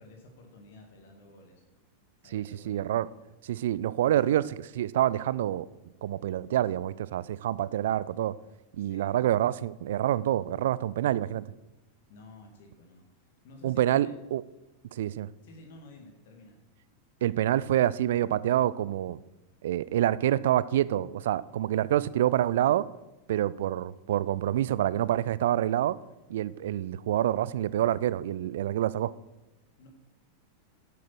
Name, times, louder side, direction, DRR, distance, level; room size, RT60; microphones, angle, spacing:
voice 1, 0.0-1.6 2.2-2.9 8.8-9.1 12.1-14.1 15.4-16.6 29.8-29.9, left 2 dB, 55° left, 3 dB, 2.0 m, -52 dB
voice 2, 2.3-3.1 3.4-5.7 6.0-8.3 8.8-11.4 13.6-14.4 14.9-15.3 17.2-19.2 19.6-22.8 23.3-26.0 26.3-29.1, right 12 dB, 55° right, 18 dB, 0.4 m, -27 dB
10.0 x 8.4 x 6.1 m, 1.0 s
figure-of-eight pair, 90°, 0 cm